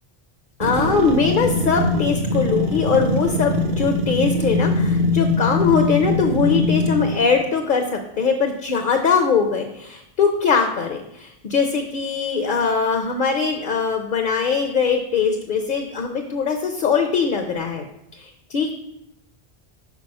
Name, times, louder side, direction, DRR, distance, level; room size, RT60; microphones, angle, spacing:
voice 1, 0.6-17.8 18.1-18.7, left 5 dB, 55° left, 5 dB, 0.8 m, -21 dB
sound 1, 0.6-7.4, left 1 dB, 60° right, 1.0 m, -22 dB
6.1 x 5.0 x 5.3 m, 0.81 s
omnidirectional pair, 1.1 m